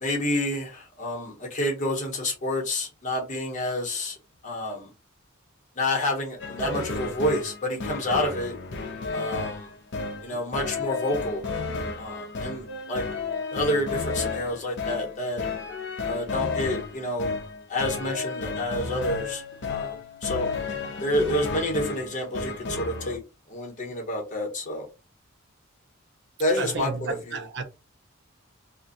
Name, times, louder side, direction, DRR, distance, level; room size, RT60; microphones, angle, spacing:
voice 1, 0.0-4.2 4.4-4.9 5.7-8.5 9.1-9.7 10.2-11.4 12.0-13.1 13.5-15.4 16.0-17.4 17.7-20.5 21.0-23.2 23.5-24.9 26.4-27.4, left 1 dB, 40° left, 1.0 m, -29 dB
sound 1, 6.4-23.2, left 4 dB, 60° left, 0.6 m, -32 dB
voice 2, 26.6-27.6, right 4 dB, 60° right, 0.5 m, -32 dB
2.5 x 2.2 x 3.9 m
head